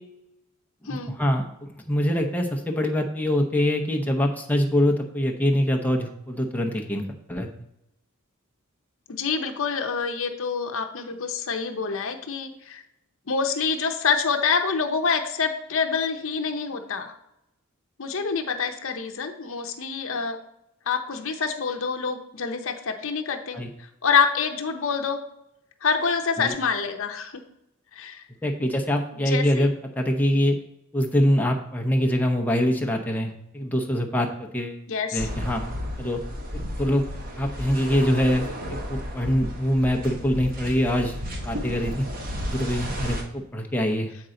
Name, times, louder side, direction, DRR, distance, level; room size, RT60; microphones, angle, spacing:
voice 1, 0.8-7.5 23.5-23.7 26.4-26.5 28.4-30.5 30.9-34.8 35.1-35.6 36.0-36.2 36.8-37.0 37.4-41.1 41.4-42.1 42.4-44.1, equal, 10° left, 2 dB, 0.8 m, -24 dB
voice 2, 9.1-12.8 13.3-17.1 18.0-20.4 20.9-25.2 25.8-27.4 27.9-28.2 29.1-29.7 34.9-35.3, left 5 dB, 65° left, 4 dB, 0.8 m, -26 dB
sound 1, 35.2-43.2, equal, 45° right, 1.1 m, -33 dB
7.8 x 5.4 x 3.8 m, 0.83 s
head